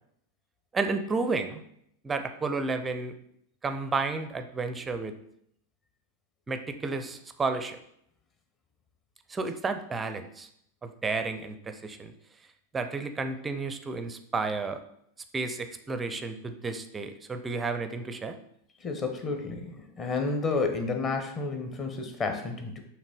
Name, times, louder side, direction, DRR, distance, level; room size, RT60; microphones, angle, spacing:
voice 1, 0.7-1.6 2.0-3.2 3.6-5.1 6.5-7.8 9.3-10.5 10.8-12.1 12.7-14.8 15.3-18.4, right 4 dB, 15° right, 8 dB, 0.5 m, -32 dB
voice 2, 18.8-22.8, left 4 dB, 25° left, 5 dB, 1.0 m, -31 dB
6.5 x 3.0 x 5.2 m, 0.73 s
figure-of-eight pair, 90°, 0 cm